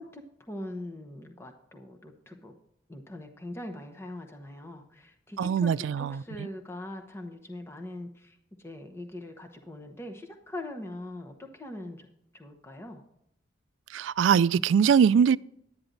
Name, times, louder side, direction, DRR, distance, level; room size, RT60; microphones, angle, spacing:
voice 1, 0.0-2.5 2.9-12.1 12.3-13.0, left 1 dB, 15° left, 0.9 m, -42 dB
voice 2, 5.4-6.2 13.9-15.4, right 7 dB, 90° right, 0.3 m, -22 dB
11.5 x 9.6 x 3.9 m
head